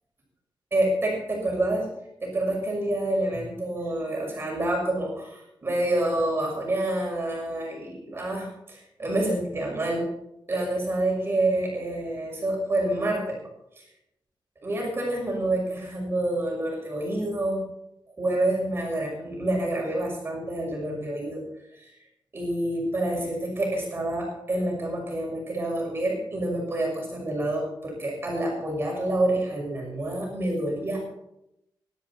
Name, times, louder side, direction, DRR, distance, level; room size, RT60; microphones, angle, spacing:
voice 1, 0.7-1.9 2.2-10.1 10.5-13.4 13.8-13.9 14.6-17.6 18.2-21.4 21.7-21.9 22.3-31.1, right 1 dB, 30° right, -1 dB, 6.2 m, -28 dB
23.5 x 12.0 x 4.4 m, 0.82 s
wide cardioid pair, 160°, 8 cm